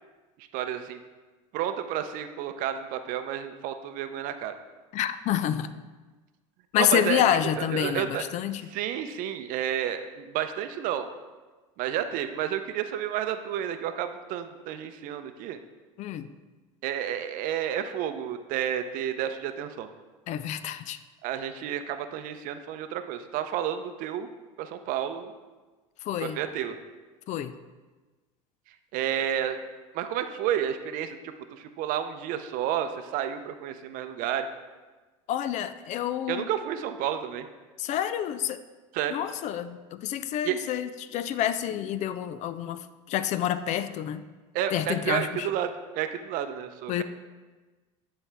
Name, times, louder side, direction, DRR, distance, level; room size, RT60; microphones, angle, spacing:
voice 1, 0.4-1.0 1.5-4.5 6.8-8.3 8.6-11.1 11.8-15.6 16.8-19.9 21.2-24.3 24.6-25.3 26.2-26.8 28.9-29.6 29.9-34.5 36.3-37.5 38.9-39.2 40.4-40.6 44.5-47.0, right 10 dB, 55° right, 9 dB, 0.6 m, -31 dB
voice 2, 4.9-5.8 6.7-8.6 16.0-16.3 20.3-21.0 26.1-26.4 27.3-27.5 35.3-36.5 37.8-38.6 39.1-44.2 44.7-45.5 46.9-47.0, left 10 dB, 45° left, 13 dB, 0.4 m, -28 dB
9.2 x 4.3 x 3.4 m, 1.3 s
supercardioid pair, 95°, 17 cm